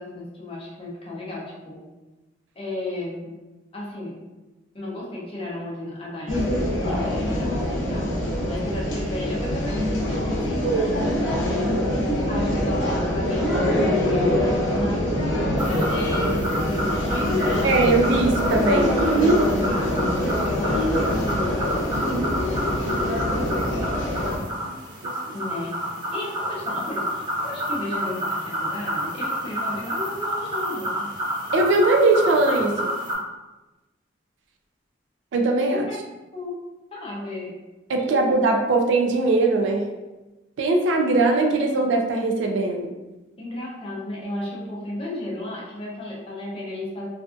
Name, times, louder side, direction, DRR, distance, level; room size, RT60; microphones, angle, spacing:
voice 1, 0.0-1.8 2.5-3.3 3.7-4.2 4.7-11.5 12.3-18.1 18.5-22.7 23.0-23.9 25.3-25.8 26.1-31.1 35.7-36.0 36.3-36.6 36.9-37.6 38.0-38.5 41.7-41.9 43.4-47.1, left 1 dB, 30° left, -4 dB, 0.6 m, -34 dB
sound 1, 6.3-24.4, left 1 dB, 80° left, 0.7 m, -24 dB
sound 2, 15.6-33.1, equal, 20° right, 1.0 m, -29 dB
voice 2, 17.6-19.4 19.9-20.1 22.0-22.3 24.6-24.7 25.0-25.1 31.5-32.9 35.3-35.8 37.9-39.9 40.6-42.9, right 3 dB, 65° right, 3 dB, 0.3 m, -21 dB
2.5 x 2.3 x 2.4 m, 1.1 s
head